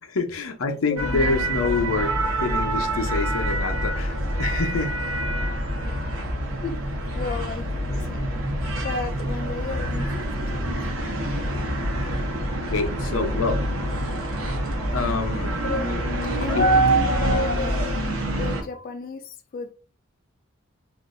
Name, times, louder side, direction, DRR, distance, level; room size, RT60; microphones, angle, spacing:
voice 1, 0.0-4.9 12.1-12.2 12.5-13.6 13.9-14.0 14.9-15.6 16.5-16.6, left 4 dB, 90° left, 0.7 m, -27 dB
voice 2, 0.9-1.4 6.6-6.8 7.1-8.3 8.8-10.1 10.5-10.6 15.6-15.9 16.3-19.7, left 3 dB, 45° left, 0.3 m, -32 dB
sound 1, 1.0-18.6, right 1 dB, 85° right, 1.0 m, -26 dB
3.6 x 2.5 x 2.5 m
head